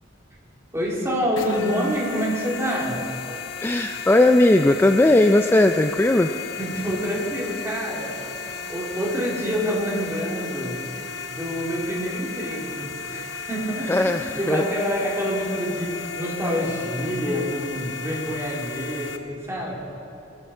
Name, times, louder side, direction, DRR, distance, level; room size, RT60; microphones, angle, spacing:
voice 1, 0.7-3.0 6.6-10.8 11.3-19.7, equal, 15° right, -5 dB, 3.3 m, -27 dB
sound 1, 1.3-19.2, left 5 dB, 80° left, 0.8 m, -35 dB
voice 2, 3.6-6.3 13.9-14.6, left 1 dB, 10° left, 6 dB, 0.4 m, -18 dB
21.5 x 13.0 x 4.4 m, 2.8 s
head